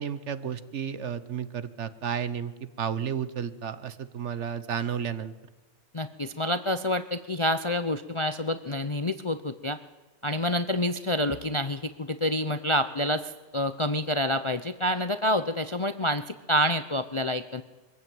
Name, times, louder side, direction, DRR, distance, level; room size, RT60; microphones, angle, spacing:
voice 1, 0.0-5.3, right 8 dB, 55° right, 14 dB, 1.2 m, -32 dB
voice 2, 5.9-9.8 10.2-17.6, left 1 dB, 35° left, 11 dB, 0.5 m, -28 dB
23.0 x 15.5 x 9.2 m, 1.2 s
omnidirectional pair, 1.5 m